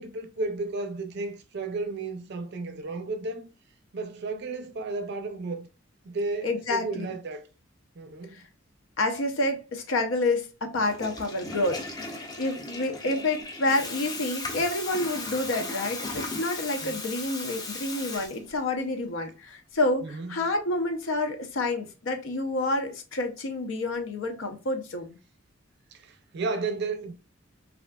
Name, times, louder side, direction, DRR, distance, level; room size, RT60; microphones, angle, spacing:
voice 1, 0.0-3.5 3.9-5.7 6.0-7.4 8.0-8.4 16.8-17.0 20.0-20.5 25.9-27.1, right 3 dB, 55° right, 0.5 m, -33 dB
voice 2, 6.4-7.1 8.3-8.4 9.0-25.2, left 2 dB, 75° left, 0.6 m, -29 dB
Water tap faucet / Toilet flush, 10.7-18.8, left 2 dB, 20° left, 0.5 m, -37 dB
3.4 x 2.4 x 2.2 m
head